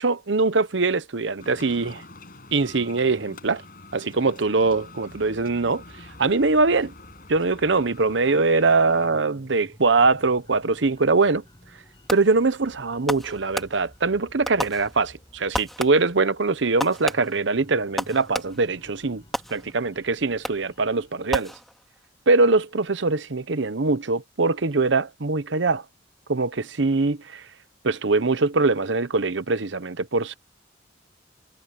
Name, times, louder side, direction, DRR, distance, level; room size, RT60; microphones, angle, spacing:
voice 1, 0.0-2.0 2.5-3.6 3.9-5.8 6.2-6.9 7.3-11.4 12.1-19.2 19.5-21.5 22.3-25.8 26.3-27.5 27.8-30.3, right 3 dB, 70° right, 0.9 m, -22 dB
sound 1, 1.4-9.1, left 3 dB, 50° left, 6.4 m, -46 dB
sound 2, 4.6-21.6, equal, 25° left, 7.2 m, -53 dB
Fireworks, 12.1-12.5 13.1-14.1 14.5-15.2 15.5-16.2 16.8-18.8 19.3-20.0 20.4-20.8 21.3-22.1, equal, ahead, 2.5 m, -33 dB
head